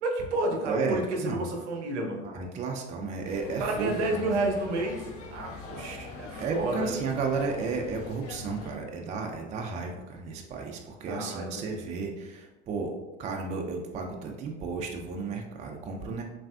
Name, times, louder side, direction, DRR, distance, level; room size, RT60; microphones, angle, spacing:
voice 1, 0.0-2.2 3.6-5.0 5.3-7.0 11.1-11.6, right 2 dB, 75° right, 2 dB, 0.6 m, -30 dB
voice 2, 0.7-1.5 2.2-4.3 5.7-6.1 6.4-12.9 13.2-16.2, right 4 dB, 20° right, 2 dB, 0.3 m, -33 dB
sound 1, 3.2-8.8, left 3 dB, 40° left, 0.6 m, -43 dB
3.2 x 2.6 x 2.3 m, 1.1 s
hypercardioid pair, 75°, 35 cm